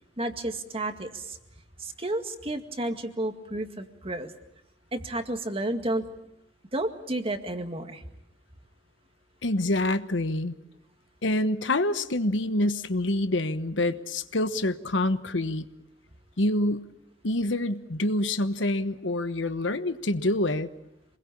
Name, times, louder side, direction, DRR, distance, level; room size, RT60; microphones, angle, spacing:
voice 1, 0.2-1.4 1.8-4.3 4.9-6.1 6.7-8.0, right 1 dB, 30° right, 6 dB, 2.1 m, -31 dB
voice 2, 9.4-10.5 11.2-15.6 16.4-16.9 17.2-20.7, left 1 dB, 70° left, 10 dB, 1.2 m, -26 dB
28.0 x 21.5 x 8.6 m, 0.84 s
head